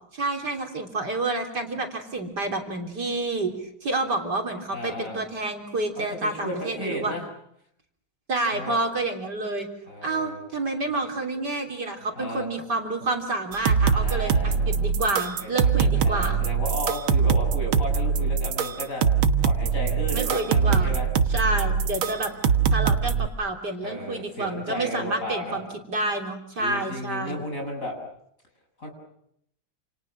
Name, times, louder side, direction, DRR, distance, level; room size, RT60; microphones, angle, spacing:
voice 1, 0.1-7.1 8.3-9.7 10.0-16.4 20.1-21.0 21.3-22.3 22.7-27.4, right 2 dB, 55° right, 3 dB, 4.0 m, -29 dB
voice 2, 4.7-5.2 6.0-7.2 8.5-8.8 9.9-10.4 12.1-12.5 13.9-14.9 15.4-19.0 19.4-21.1 22.1-22.3 23.8-25.6 26.6-28.0 28.8-28.9, left 1 dB, 40° left, 3 dB, 7.9 m, -34 dB
sound 1, 13.5-23.3, right 6 dB, 85° right, 2.2 m, -23 dB
29.5 x 28.5 x 6.4 m, 0.73 s
omnidirectional pair, 2.2 m